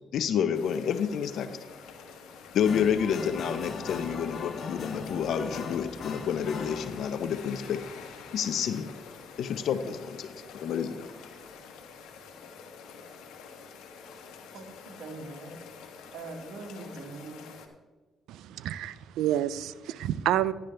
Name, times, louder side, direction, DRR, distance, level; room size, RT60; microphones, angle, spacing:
voice 1, 0.1-1.5 2.5-7.8 8.3-8.9 9.4-11.1, left 8 dB, 70° left, 11 dB, 0.5 m, -29 dB
sound 1, 0.5-17.7, left 5 dB, 90° left, 1.1 m, -47 dB
sound 2, 1.7-1.8 2.3-7.1, left 4 dB, 55° left, 1.3 m, -38 dB
voice 2, 14.5-15.6 16.1-17.4, right 3 dB, 70° right, 4 dB, 1.6 m, -42 dB
voice 3, 18.3-20.5, right 12 dB, 90° right, 17 dB, 0.4 m, -29 dB
11.5 x 10.5 x 3.2 m, 1.3 s
cardioid pair, 90°, 0 cm